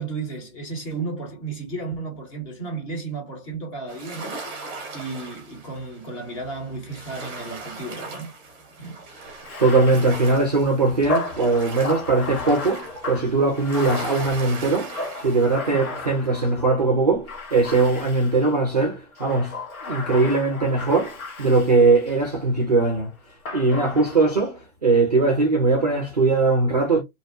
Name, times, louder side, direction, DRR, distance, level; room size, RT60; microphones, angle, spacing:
voice 1, 0.0-8.3 8.8-9.0 9.9-10.0 15.7-15.9, right 3 dB, 25° left, 0.9 m, -34 dB
sound 1, 3.9-15.6, right 3 dB, 10° right, 0.8 m, -39 dB
Bathtub (filling or washing), 9.3-16.7 17.3-18.6 19.1-22.3 23.5-24.4, left 3 dB, 80° left, 1.2 m, -34 dB
voice 2, 9.6-19.6 19.8-23.1 23.5-27.0, right 3 dB, 30° right, 0.4 m, -20 dB
2.7 x 2.1 x 2.5 m
hypercardioid pair, 150°, 42 cm